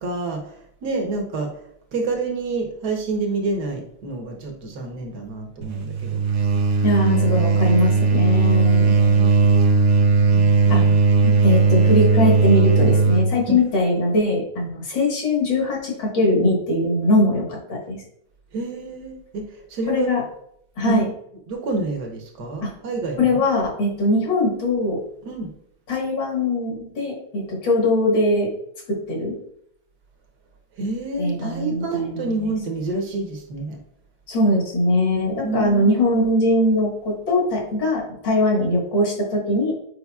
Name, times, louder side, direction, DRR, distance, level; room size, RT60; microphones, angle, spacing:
voice 1, 0.0-1.5 1.9-6.2 7.0-7.6 8.8-9.3 10.3-11.0 13.5-13.6 18.5-20.1 20.9-21.0 21.5-23.4 25.2-25.5 30.8-33.8 35.4-36.2, right 3 dB, 55° right, 2 dB, 1.4 m, -28 dB
sound 1, 5.6-13.3, right 5 dB, 75° right, 0.7 m, -17 dB
voice 2, 6.8-8.9 10.7-10.8 11.2-18.0 19.9-20.2 20.8-21.1 22.6-22.7 23.2-25.0 25.9-28.5 28.9-29.4 31.2-32.5 34.3-39.7, left 1 dB, 55° left, -2 dB, 2.2 m, -21 dB
8.2 x 5.0 x 2.3 m, 0.74 s
omnidirectional pair, 2.4 m